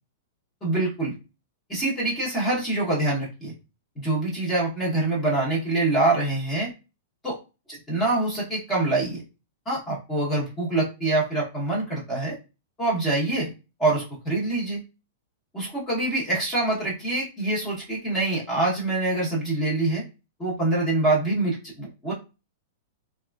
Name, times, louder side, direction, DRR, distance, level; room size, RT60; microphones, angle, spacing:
voice 1, 0.6-1.1 1.7-3.5 4.0-6.7 7.2-7.4 7.9-9.2 9.7-12.3 12.8-13.5 13.8-14.8 15.5-20.0 20.4-22.1, right 2 dB, 10° left, -5 dB, 0.8 m, -25 dB
2.9 x 2.3 x 2.3 m, 0.29 s
supercardioid pair, 160°, 0 cm